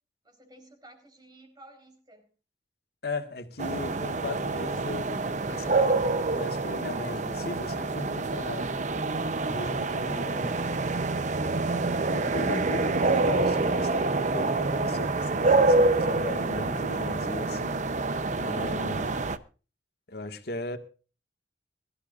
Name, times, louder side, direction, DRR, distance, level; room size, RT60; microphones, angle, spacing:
voice 1, 0.2-2.3 18.5-19.0, right 2 dB, 25° right, 4.2 m, -51 dB
voice 2, 3.0-8.8 9.4-10.5 12.1-17.8 18.4-19.1 20.1-20.8, left 2 dB, 65° left, 1.9 m, -37 dB
sound 1, 3.6-19.4, right 3 dB, 45° right, 0.8 m, -27 dB
22.5 x 13.0 x 2.5 m
head